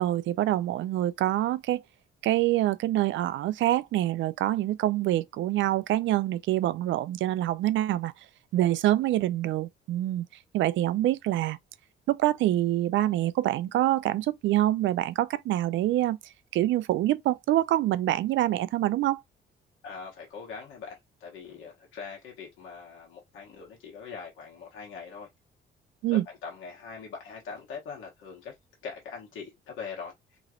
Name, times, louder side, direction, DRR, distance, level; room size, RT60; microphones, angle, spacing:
voice 1, 0.0-1.8 2.2-8.1 8.5-10.3 10.5-11.6 12.1-16.2 16.5-19.2 26.0-26.3, right 14 dB, 75° right, 0.4 m, -26 dB
voice 2, 19.8-25.3 26.1-28.5 28.8-30.1, left 5 dB, 85° left, 1.2 m, -42 dB
3.0 x 2.9 x 2.3 m
cardioid pair, 90°, 20 cm